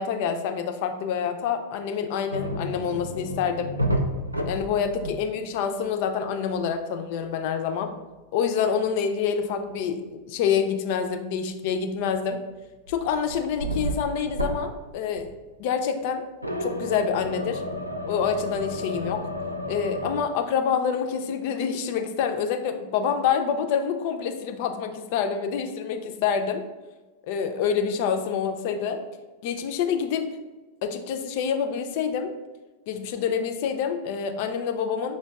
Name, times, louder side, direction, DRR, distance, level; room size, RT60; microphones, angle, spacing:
voice 1, 0.0-3.7 4.5-7.9 8.3-12.4 12.9-15.3 15.6-16.2 16.6-17.6 18.1-19.3 19.7-26.6 27.3-29.0 29.4-30.3 30.8-32.3 32.9-35.2, left 7 dB, 50° left, 6 dB, 0.4 m, -27 dB
sound 1, 2.3-5.6 5.8-6.1 9.5-9.6 11.9-12.4 12.9-14.9 15.2-15.5 16.4-20.2, equal, 85° right, 0.3 m, -31 dB
5.8 x 2.2 x 2.3 m, 1.2 s
figure-of-eight pair, 90°, 0 cm